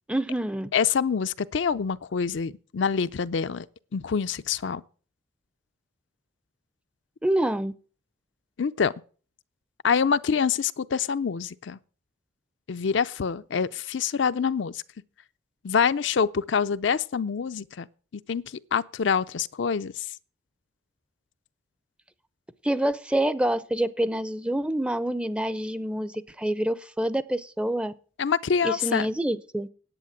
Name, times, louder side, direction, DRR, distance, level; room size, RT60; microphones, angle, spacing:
voice 1, 0.1-0.7 7.2-7.7 22.6-27.9 28.6-29.7, right 1 dB, 5° right, 0.5 m, -27 dB
voice 2, 0.7-3.7 3.9-4.8 8.6-8.9 9.8-11.8 12.7-14.8 15.6-17.9 18.1-18.4 18.7-20.1 28.2-29.1, left 6 dB, 65° left, 0.5 m, -26 dB
10.0 x 8.6 x 7.2 m
head